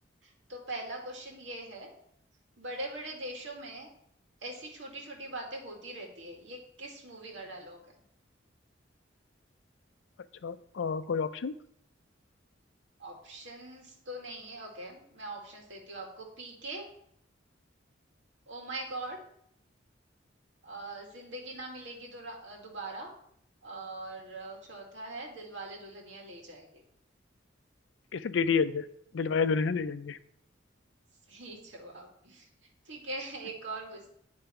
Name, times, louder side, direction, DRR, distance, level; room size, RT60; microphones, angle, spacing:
voice 1, 0.2-1.9 2.6-3.9 4.4-7.8 13.0-16.9 18.5-19.2 20.6-23.1 23.6-26.8 31.3-32.5 32.9-34.2, right 2 dB, 75° right, 0 dB, 1.9 m, -42 dB
voice 2, 10.4-11.5 28.1-28.8 29.1-30.2, left 5 dB, 75° left, 13 dB, 0.4 m, -29 dB
9.9 x 3.4 x 5.2 m, 0.69 s
head